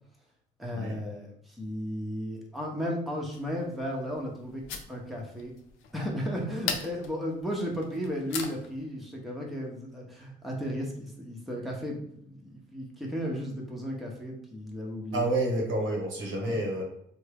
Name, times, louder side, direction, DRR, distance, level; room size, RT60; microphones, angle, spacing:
voice 1, 0.6-4.6 4.9-5.5 5.9-15.3 16.4-16.6, equal, ahead, -2 dB, 0.8 m, -34 dB
sound 1, 3.3-8.8, left 6 dB, 85° left, 0.5 m, -40 dB
voice 2, 15.1-16.8, right 1 dB, 85° right, -1 dB, 1.2 m, -29 dB
3.5 x 2.1 x 3.3 m, 0.70 s
cardioid pair, 90°, 20 cm